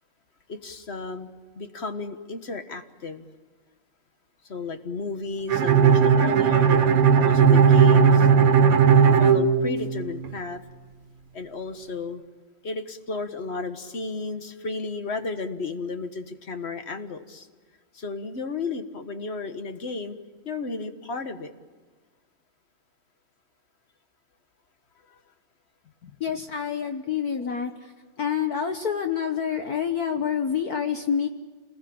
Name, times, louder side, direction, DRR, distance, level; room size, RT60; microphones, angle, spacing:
voice 1, 0.5-1.3 1.5-3.2 4.5-6.8 7.2-8.3 8.9-10.6 11.3-12.2 12.6-17.5 17.9-20.2 20.4-21.5 25.1-25.2, left 3 dB, 35° left, 8 dB, 1.5 m, -33 dB
Bowed string instrument, 5.5-10.3, right 6 dB, 90° right, 2.4 m, -17 dB
voice 2, 26.0-27.9 28.2-31.3, left 7 dB, 50° left, 6 dB, 1.5 m, -27 dB
28.5 x 20.0 x 8.8 m, 1.4 s
omnidirectional pair, 2.3 m